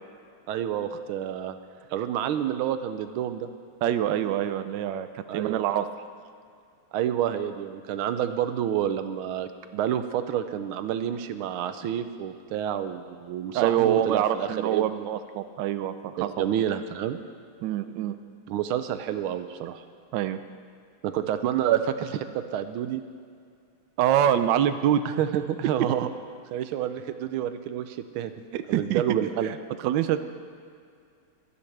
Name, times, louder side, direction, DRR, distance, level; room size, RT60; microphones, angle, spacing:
voice 1, 0.5-1.6 1.9-3.5 5.3-5.6 6.9-15.1 16.2-17.2 18.5-19.8 21.0-23.0 25.0-26.1 26.5-28.3 28.7-29.5, right 10 dB, 90° right, 10 dB, 1.5 m, -29 dB
voice 2, 3.8-5.9 13.5-16.5 17.6-18.2 20.1-20.4 24.0-25.0 28.5-29.0 29.4-29.5 29.8-30.2, right 11 dB, 70° right, 11 dB, 1.2 m, -25 dB
24.5 x 9.9 x 3.4 m, 2.3 s
omnidirectional pair, 2.3 m